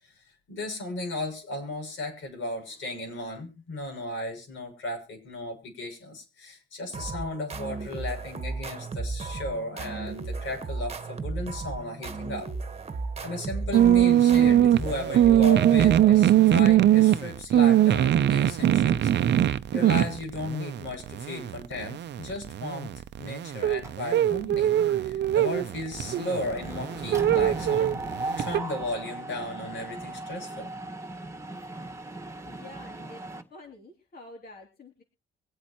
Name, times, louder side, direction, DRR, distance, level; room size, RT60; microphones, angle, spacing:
voice 1, 0.0-12.5 13.2-19.1 19.4-22.9 23.2-28.0 28.4-30.7, left 2 dB, 75° left, 2 dB, 6.6 m, -35 dB
sound 1, 6.9-16.4, right 4 dB, 30° right, 1.5 m, -35 dB
sound 2, 13.7-28.6, right 11 dB, 60° right, 0.7 m, -22 dB
Mechanisms, 23.8-24.4 24.8-25.0 25.2-33.4, right 2 dB, 15° right, 1.7 m, -38 dB
voice 2, 32.4-33.2 33.5-35.0, left 2 dB, 50° left, 1 dB, 3.1 m, -48 dB
24.0 x 8.5 x 3.1 m, 0.29 s
cardioid pair, 90°, 20 cm